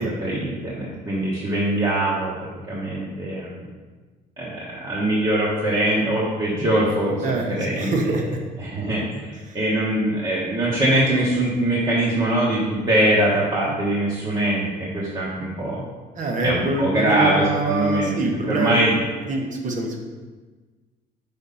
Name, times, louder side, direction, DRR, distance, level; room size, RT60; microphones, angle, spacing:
voice 1, 0.0-2.3 2.7-3.7 4.4-8.2 8.6-15.9 16.4-18.1 18.5-18.9, right 1 dB, 25° right, -7 dB, 1.1 m, -22 dB
voice 2, 7.2-8.4 9.4-9.6 16.1-18.8 19.3-20.0, right 3 dB, 50° right, 2 dB, 1.0 m, -24 dB
5.2 x 4.4 x 4.1 m, 1.4 s
cardioid pair, 110°, 17 cm